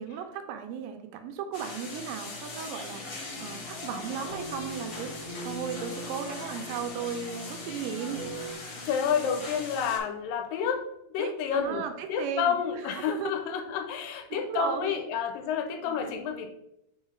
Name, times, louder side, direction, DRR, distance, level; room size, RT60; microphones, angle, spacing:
voice 1, 0.0-5.1 5.4-8.3 11.2-12.6 13.0-13.3 14.3-15.0 15.8-16.1, right 7 dB, 80° right, 7 dB, 2.2 m, -36 dB
sound 1, 1.5-10.0, left 3 dB, 60° left, 1.2 m, -40 dB
sound 2, 3.3-8.5, right 1 dB, 15° left, 1.3 m, -42 dB
voice 2, 8.8-11.8 12.1-16.5, left 7 dB, 80° left, 5 dB, 2.2 m, -30 dB
5.4 x 3.8 x 4.9 m, 0.83 s
omnidirectional pair, 4.2 m